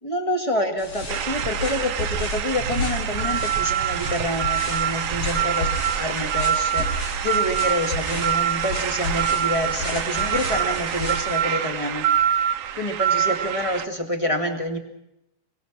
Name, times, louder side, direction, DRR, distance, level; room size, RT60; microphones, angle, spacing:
voice 1, 0.0-12.4 12.7-14.8, left 1 dB, 15° left, 4 dB, 1.6 m, -27 dB
sound 1, 0.8-11.4, left 1 dB, 85° left, 8.6 m, -32 dB
sound 2, 1.1-13.9, right 10 dB, 70° right, 1.4 m, -25 dB
25.5 x 22.5 x 6.1 m, 0.86 s
omnidirectional pair, 3.8 m